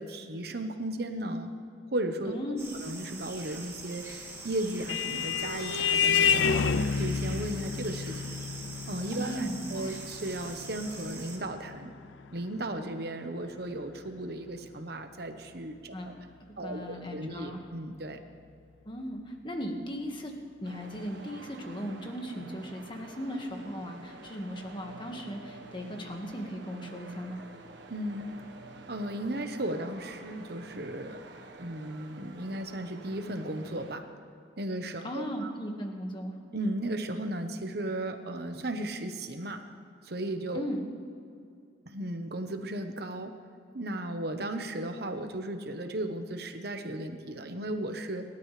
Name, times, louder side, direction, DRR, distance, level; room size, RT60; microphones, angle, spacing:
voice 1, 0.0-1.5 1.9-2.4 2.7-8.4 8.9-11.9 12.3-16.1 16.6-18.2 27.9-28.3 28.9-31.2 31.6-34.1 34.6-35.5 36.5-39.6 40.0-40.7 41.9-43.3 43.7-48.2, right 1 dB, 60° right, 7 dB, 1.1 m, -35 dB
voice 2, 2.3-2.7 9.2-9.9 15.9-16.2 16.6-17.6 18.8-20.3 20.6-27.4 35.0-36.4 40.5-40.9, equal, 25° left, 2 dB, 1.7 m, -37 dB
sound 1, 2.6-11.4, right 3 dB, 15° right, 2.0 m, -43 dB
Vehicle horn car horn honking, 4.3-13.2, left 6 dB, 85° left, 0.5 m, -30 dB
sound 2, 20.6-34.0, right 2 dB, 80° right, 1.4 m, -49 dB
29.0 x 12.5 x 3.3 m, 2.4 s
head